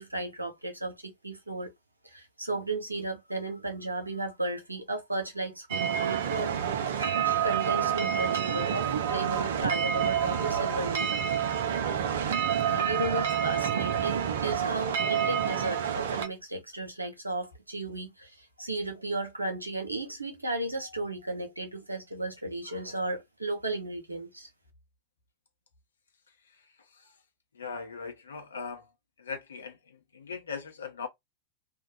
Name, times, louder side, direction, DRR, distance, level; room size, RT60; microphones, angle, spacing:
voice 1, 0.0-1.7 2.0-6.6 7.0-11.1 12.7-24.5, right 2 dB, 85° right, 1.0 m, -34 dB
sound 1, 5.7-16.3, right 8 dB, 60° right, 0.7 m, -28 dB
voice 2, 27.6-28.8 29.2-29.8 30.1-31.1, left 5 dB, 70° left, 0.9 m, -39 dB
2.8 x 2.4 x 4.0 m
figure-of-eight pair, 90°, 0 cm